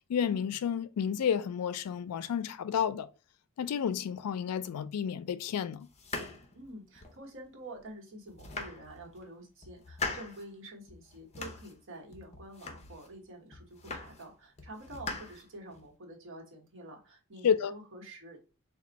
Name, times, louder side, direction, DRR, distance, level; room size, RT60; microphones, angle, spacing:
voice 1, 0.1-3.1 3.6-5.9 17.4-17.7, left 8 dB, 90° left, 0.4 m, -31 dB
sound 1, 5.9-7.3 7.8-7.9 8.3-9.2 9.6-10.5 10.9-11.8 12.1-13.1 13.5-14.3 14.6-15.9, left 3 dB, 30° left, 0.6 m, -41 dB
voice 2, 6.5-18.4, right 1 dB, 60° right, 1.2 m, -48 dB
3.4 x 2.3 x 4.0 m
head